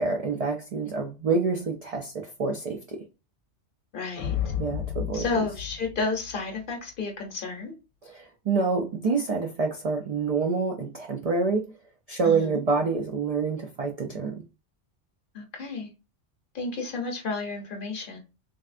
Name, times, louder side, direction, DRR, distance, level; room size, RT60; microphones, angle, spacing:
voice 1, 0.0-3.0 4.6-5.3 8.1-11.7 12.1-14.4, right 4 dB, 70° right, 0.3 m, -27 dB
voice 2, 3.9-4.4 5.1-7.7 12.2-12.6 15.3-15.9 16.5-18.2, left 3 dB, 50° left, 0.8 m, -31 dB
sound 1, 4.2-6.6, left 10 dB, 80° left, 0.9 m, -32 dB
3.3 x 2.6 x 2.4 m
omnidirectional pair, 1.2 m